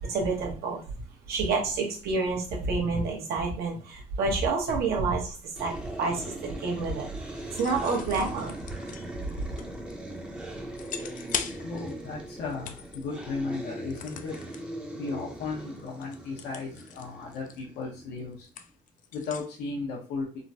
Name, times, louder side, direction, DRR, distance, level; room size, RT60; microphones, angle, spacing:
voice 1, 0.0-0.8 1.3-5.7 6.0-8.6 9.4-9.5, right 4 dB, 65° right, 0 dB, 1.1 m, -29 dB
sound 1, 5.6-18.5, right 1 dB, 5° right, 0.6 m, -40 dB
sound 2, 7.4-10.2 10.8-12.1 12.3-13.1 13.9-14.6 15.1-15.3 15.6-19.5, left 8 dB, 50° left, 0.4 m, -40 dB
voice 2, 11.6-14.4 14.9-18.5 19.1-20.3, left 4 dB, 80° left, -2 dB, 0.9 m, -35 dB
3.6 x 2.2 x 2.7 m, 0.37 s
cardioid pair, 110°, 17 cm